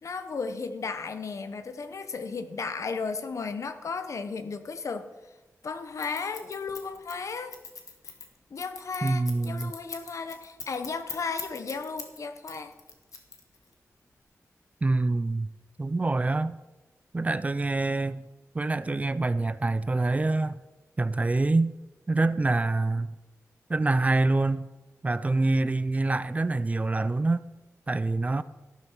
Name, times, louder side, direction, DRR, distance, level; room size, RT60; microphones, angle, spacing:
voice 1, 0.0-5.1 5.6-7.6 8.5-12.7, left 4 dB, 65° left, 1.1 m, -34 dB
Scissors, 6.0-12.2 12.5-13.7, left 5 dB, 85° left, 1.7 m, -41 dB
voice 2, 9.0-9.7 14.8-15.5 15.8-16.6 17.1-18.2 18.5-20.6 21.0-21.7 22.1-23.2 23.7-24.7 25.0-27.4 27.9-28.4, right 2 dB, 25° right, 0.5 m, -26 dB
14.0 x 12.0 x 4.7 m
wide cardioid pair, 140°, 6 cm